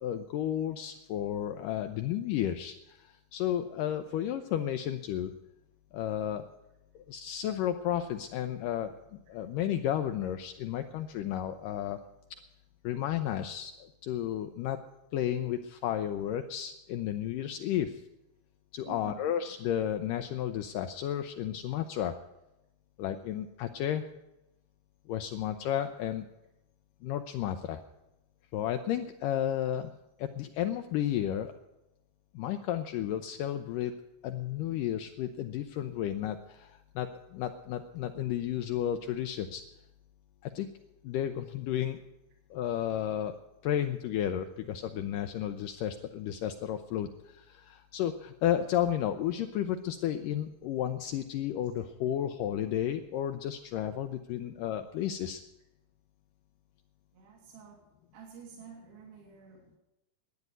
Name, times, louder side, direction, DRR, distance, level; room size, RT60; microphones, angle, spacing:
voice 1, 0.0-5.3 5.9-6.5 7.0-12.0 12.8-14.8 15.1-18.0 18.7-22.2 23.0-24.1 25.1-26.3 27.0-27.8 28.5-29.9 30.2-31.5 32.3-33.9 34.2-39.6 40.4-40.7 41.0-42.0 42.5-55.4, left 11 dB, 80° left, 7 dB, 2.0 m, -32 dB
voice 2, 18.8-19.3 51.8-51.9 52.7-52.8 57.1-57.8 58.1-59.8, right 7 dB, 75° right, 0 dB, 4.2 m, -50 dB
12.0 x 9.5 x 9.2 m, 0.91 s
omnidirectional pair, 4.4 m